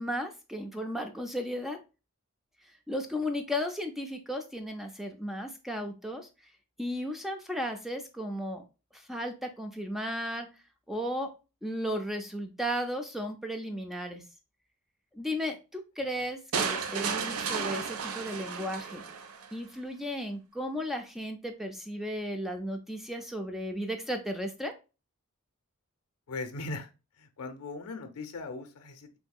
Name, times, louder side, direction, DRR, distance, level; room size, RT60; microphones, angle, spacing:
voice 1, 0.0-1.8 2.9-6.3 6.8-8.6 8.9-10.5 10.9-11.3 11.6-14.2 15.1-19.0 19.5-24.7, equal, ahead, 4 dB, 0.3 m, -35 dB
sound 1, 16.5-19.5, right 6 dB, 70° right, 0.4 m, -33 dB
voice 2, 26.3-26.9 27.2-29.2, left 3 dB, 85° left, 7 dB, 0.5 m, -39 dB
3.6 x 2.7 x 2.3 m, 0.31 s
head